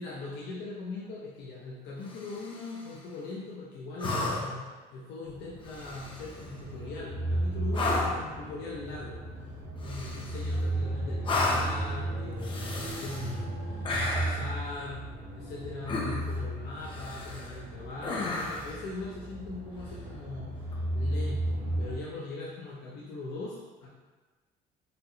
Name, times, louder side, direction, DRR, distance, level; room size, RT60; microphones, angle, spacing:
voice 1, 0.0-9.5 9.8-15.1 15.3-23.9, left 3 dB, 80° left, -5 dB, 0.6 m, -41 dB
sound 1, 2.1-2.8 4.0-4.7 5.7-6.4 7.7-8.3 9.8-10.6 11.2-11.8 12.4-13.3 13.8-14.5 15.9-16.4 16.9-17.5 18.0-18.8 20.6-20.7, left 2 dB, 30° left, 0.5 m, -33 dB
sound 2, 5.3-21.9, right 1 dB, 70° right, 0.9 m, -35 dB
4.0 x 2.0 x 2.7 m, 1.3 s
cardioid pair, 110°, 17 cm